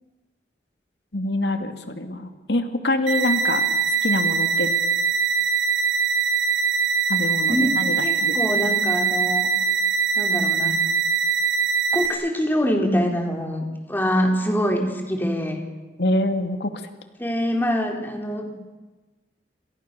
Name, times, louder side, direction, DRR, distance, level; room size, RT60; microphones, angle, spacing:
voice 1, 1.1-3.6 4.0-4.7 7.1-7.9 8.2-8.4 16.0-16.7, left 1 dB, 75° left, 7 dB, 2.4 m, -25 dB
sound 1, 3.1-12.1, right 5 dB, 85° right, 6.2 m, -22 dB
voice 2, 7.5-9.5 10.2-10.8 11.9-15.7 17.2-18.5, equal, 10° left, 2 dB, 4.0 m, -24 dB
29.0 x 27.0 x 7.0 m, 1.2 s
head